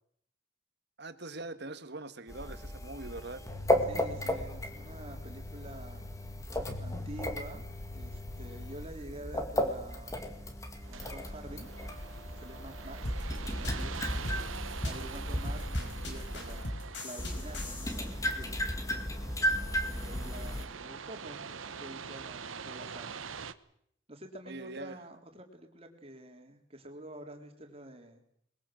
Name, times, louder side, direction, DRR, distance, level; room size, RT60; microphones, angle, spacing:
voice 1, 1.0-3.4 24.5-25.0, right 2 dB, 55° right, 10 dB, 1.7 m, -42 dB
sound 1, 2.3-16.6 17.2-20.6, left 1 dB, 15° left, 2.3 m, -35 dB
voice 2, 3.9-6.1 6.8-10.2 10.9-11.7 12.3-14.6 14.8-18.6 19.9-23.2 24.1-28.2, right 1 dB, 30° right, 4 dB, 3.5 m, -48 dB
sound 2, 10.8-23.5, right 6 dB, 90° right, 1.1 m, -45 dB
sound 3, 13.0-18.1, left 1 dB, 60° left, 5.0 m, -40 dB
22.5 x 21.5 x 7.8 m, 0.70 s
head